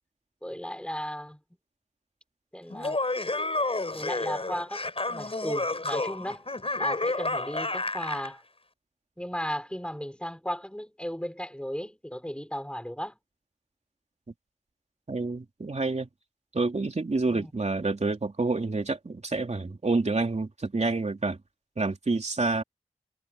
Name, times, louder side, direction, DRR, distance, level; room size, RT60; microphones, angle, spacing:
voice 1, 0.4-1.4 2.5-3.0 3.8-6.5 6.8-8.4 9.2-13.2 17.3-17.5, equal, 10° left, 5.9 m, -35 dB
Laughter, 2.7-8.3, left 2 dB, 50° left, 5.6 m, -30 dB
voice 2, 15.1-16.1 16.5-21.4 21.8-22.6, right 3 dB, 65° right, 3.1 m, -28 dB
wide cardioid pair, 55°, 13 cm